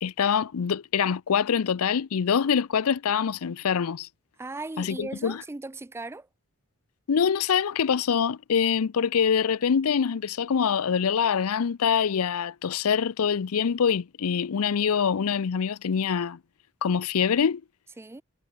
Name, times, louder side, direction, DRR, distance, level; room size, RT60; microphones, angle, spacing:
voice 1, 0.0-4.1 4.8-5.4 7.1-16.4 16.8-17.6, left 7 dB, 85° left, 0.5 m, -25 dB
voice 2, 4.4-6.3 18.0-18.2, right 2 dB, 10° right, 0.3 m, -37 dB
head